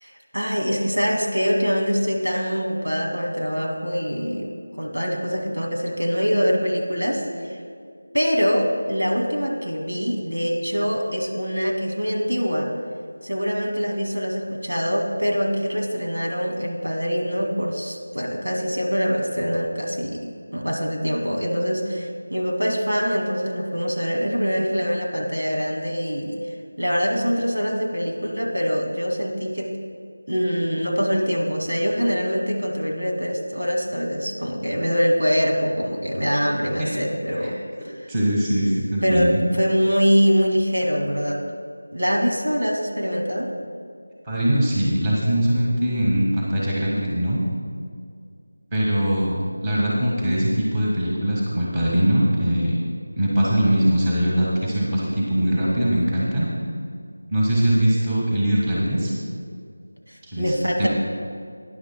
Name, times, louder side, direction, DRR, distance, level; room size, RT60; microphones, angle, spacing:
voice 1, 0.0-7.6 8.1-12.7 13.2-26.4 26.8-29.7 30.3-37.6 38.0-38.1 39.0-41.4 41.9-43.5 60.1-60.9, equal, 85° right, 0 dB, 2.2 m, -24 dB
voice 2, 36.4-36.9 37.4-37.5 38.1-39.4 44.2-47.4 48.7-52.8 53.1-56.5 57.3-59.1 60.2-60.5 60.8-60.9, equal, 10° right, -6 dB, 1.5 m, -21 dB
19.0 x 10.5 x 2.2 m, 2.2 s
figure-of-eight pair, 170°, 0 cm